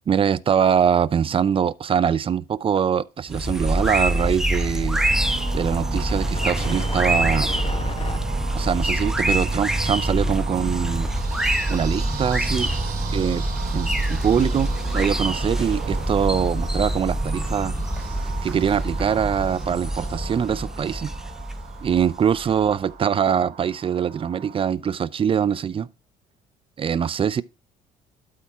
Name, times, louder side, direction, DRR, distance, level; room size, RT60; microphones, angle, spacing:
voice 1, 0.1-5.0 5.5-7.5 8.5-11.1 11.7-12.7 13.1-13.4 13.7-17.7 18.4-21.1 21.8-25.9 26.8-27.4, right 8 dB, 30° right, 0.5 m, -23 dB
sound 1, 3.3-22.7, right 1 dB, 5° right, 0.8 m, -25 dB
sound 2, 4.5-8.2, left 4 dB, 35° left, 1.2 m, -38 dB
sound 3, 4.9-24.7, right 7 dB, 55° right, 2.3 m, -36 dB
12.5 x 4.2 x 3.5 m
cardioid pair, 110°, 17 cm